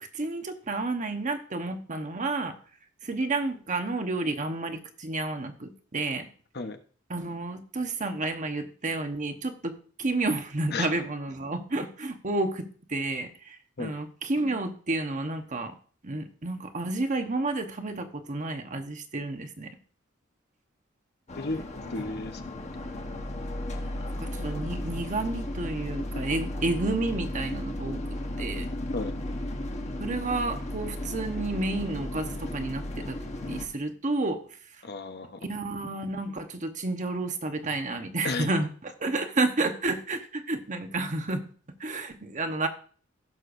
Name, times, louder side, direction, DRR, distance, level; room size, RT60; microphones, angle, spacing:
voice 1, 0.1-2.6 3.0-6.3 7.1-9.7 10.0-15.7 16.0-19.7 24.2-28.7 30.0-34.4 35.5-41.4 41.8-42.7, right 2 dB, 40° right, 6 dB, 1.0 m, -31 dB
sound 1, 21.3-33.7, left 1 dB, 35° left, 1.2 m, -34 dB
voice 2, 21.9-22.7 28.9-29.1 34.8-35.4 38.2-38.5, left 3 dB, 55° left, 8 dB, 0.9 m, -33 dB
16.0 x 6.5 x 2.6 m, 0.43 s
head